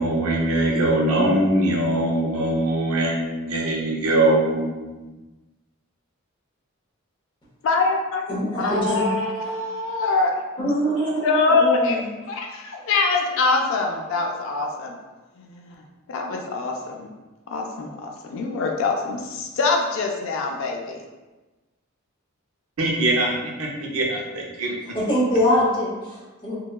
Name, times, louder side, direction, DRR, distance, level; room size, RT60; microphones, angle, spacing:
voice 1, 0.0-5.1 22.8-24.7, right 1 dB, 80° right, -1 dB, 0.5 m, -22 dB
voice 2, 7.6-10.3 10.6-10.7 11.2-15.0 15.4-17.1 17.5-21.0, left 3 dB, 60° left, 1 dB, 0.3 m, -24 dB
voice 3, 8.3-9.1 10.6-12.0 24.9-26.6, equal, 20° left, -7 dB, 0.8 m, -23 dB
2.7 x 2.2 x 2.2 m, 1.2 s
head